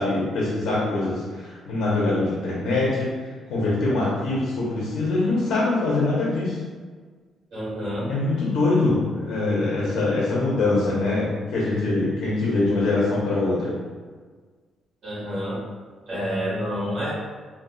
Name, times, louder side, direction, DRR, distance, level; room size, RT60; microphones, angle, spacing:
voice 1, 0.0-3.1 3.5-6.6 8.0-13.7, left 2 dB, 75° left, -6 dB, 0.8 m, -23 dB
voice 2, 7.5-8.1 15.0-15.6 16.1-17.1, equal, 55° right, -10 dB, 1.3 m, -28 dB
3.8 x 2.4 x 2.3 m, 1.5 s
cardioid pair, 90°, 0 cm